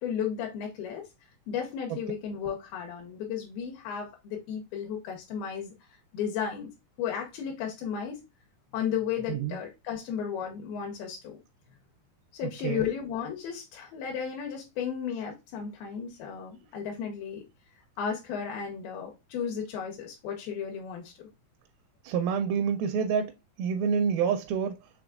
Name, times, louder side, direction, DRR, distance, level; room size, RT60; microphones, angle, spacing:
voice 1, 0.0-1.1 1.5-5.7 6.1-6.7 7.0-8.2 8.7-11.4 12.3-17.4 18.0-21.3, left 7 dB, 80° left, 2.6 m, -34 dB
voice 2, 22.0-23.3 23.6-24.8, right 6 dB, 85° right, 2.3 m, -27 dB
6.0 x 3.4 x 2.3 m
omnidirectional pair, 4.3 m